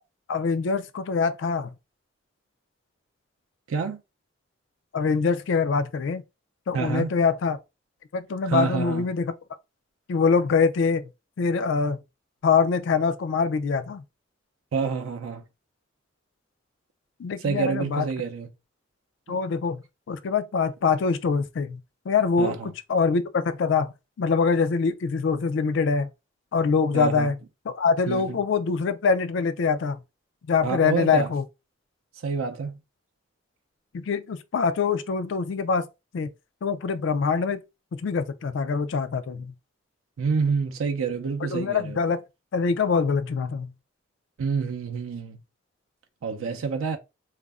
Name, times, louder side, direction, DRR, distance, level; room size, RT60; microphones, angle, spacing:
voice 1, 0.3-1.7 4.9-6.2 6.7-7.6 8.1-9.3 10.1-11.0 11.4-12.0 12.4-14.0 17.2-18.1 19.3-19.8 20.1-21.8 22.1-23.9 24.2-26.1 26.5-27.4 27.7-30.0 30.5-31.4 33.9-35.8 36.1-36.3 36.6-37.6 37.9-39.5 41.5-42.2 42.5-43.7, left 5 dB, 65° left, 0.3 m, -24 dB
voice 2, 3.7-4.0 6.7-7.2 8.4-9.1 14.7-15.4 17.4-18.5 19.3-19.4 22.4-22.7 26.9-27.3 28.1-28.4 30.6-31.3 32.2-32.8 40.2-42.0 44.4-45.4 46.2-47.0, right 5 dB, 90° right, 0.4 m, -28 dB
2.4 x 2.0 x 3.3 m
head